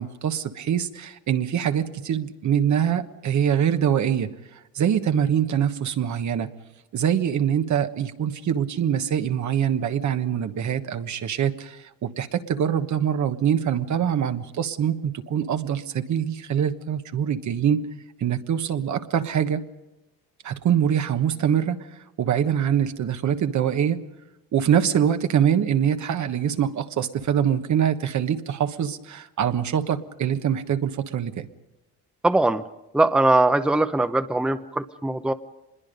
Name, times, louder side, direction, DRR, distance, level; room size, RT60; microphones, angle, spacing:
voice 1, 0.0-6.5 6.9-17.8 18.2-19.6 20.4-21.9 22.2-24.0 24.5-31.5, right 9 dB, 55° right, 8 dB, 1.3 m, -24 dB
voice 2, 32.2-32.6 32.9-35.3, right 2 dB, 5° right, 9 dB, 0.7 m, -21 dB
25.5 x 21.5 x 5.3 m, 1.0 s
cardioid pair, 95°, 34 cm